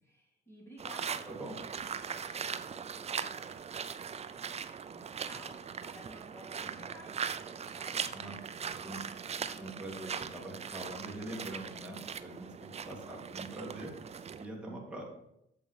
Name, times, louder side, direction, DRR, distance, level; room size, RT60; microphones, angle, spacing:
voice 1, 0.0-7.2 7.4-8.8 9.4-9.6 12.4-12.7, equal, 15° left, -3 dB, 3.5 m, -56 dB
sound 1, 0.8-14.4, right 6 dB, 35° right, 0.5 m, -40 dB
voice 2, 1.3-1.6 6.6-6.8 8.1-8.4 8.8-9.0 9.6-13.9 14.4-15.0, right 1 dB, 5° right, -3 dB, 2.2 m, -44 dB
7.4 x 5.4 x 4.9 m, 0.79 s
cardioid pair, 90°, 20 cm